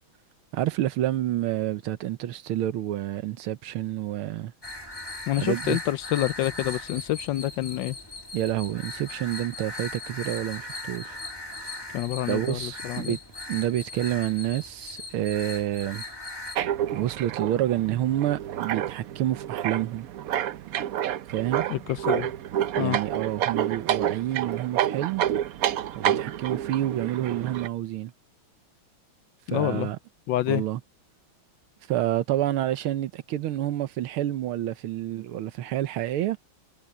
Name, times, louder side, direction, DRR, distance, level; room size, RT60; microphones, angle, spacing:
voice 1, 0.5-4.5 5.3-5.8 8.3-11.2 11.6-11.7 12.3-13.2 13.5-16.0 16.9-20.1 21.3-21.7 22.7-25.2 26.0-28.1 29.5-30.0 30.5-30.8 31.9-36.4, right 13 dB, 90° right, 1.8 m, -28 dB
sound 1, 4.6-16.6, left 2 dB, 10° left, 2.1 m, -38 dB
voice 2, 5.3-8.0 11.9-13.2 21.7-22.3 22.8-23.0 29.5-29.9 30.3-30.6, left 14 dB, 75° left, 1.2 m, -27 dB
sound 2, 16.5-27.7, right 11 dB, 70° right, 0.8 m, -29 dB
omnidirectional pair, 2.3 m